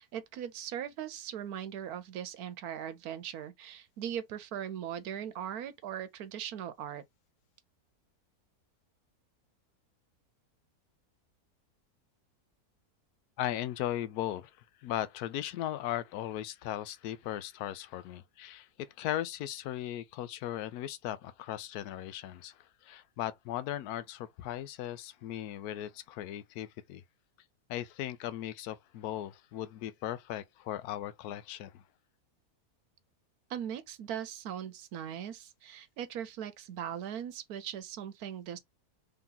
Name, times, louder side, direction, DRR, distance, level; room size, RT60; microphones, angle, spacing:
voice 1, 0.0-7.0 33.5-38.6, right 9 dB, 75° right, 1.1 m, -39 dB
voice 2, 13.4-14.5 14.8-22.6 22.8-27.0 27.7-31.8, left 12 dB, 75° left, 1.1 m, -37 dB
3.5 x 2.9 x 3.8 m
omnidirectional pair, 1.6 m